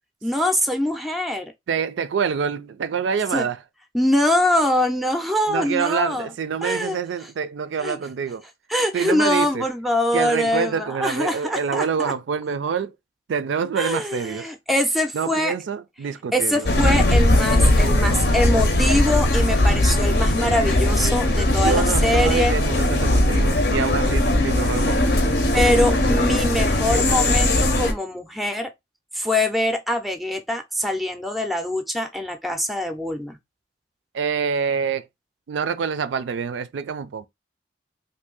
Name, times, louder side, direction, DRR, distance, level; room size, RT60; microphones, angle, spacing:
voice 1, 0.2-1.5 3.3-3.5 3.9-6.3 6.6-7.0 7.8-8.0 8.7-12.1 13.8-15.5 16.3-22.5 25.5-28.7 29.1-33.4, left 1 dB, ahead, 0.4 m, -23 dB
voice 2, 1.7-3.6 5.5-8.4 8.9-9.7 10.1-12.9 13.3-14.5 15.1-16.7 21.5-25.4 34.1-35.1 35.5-37.3, right 6 dB, 85° right, 0.4 m, -26 dB
sound 1, 16.7-27.9, left 1 dB, 60° left, 0.7 m, -19 dB
2.7 x 2.6 x 3.7 m
head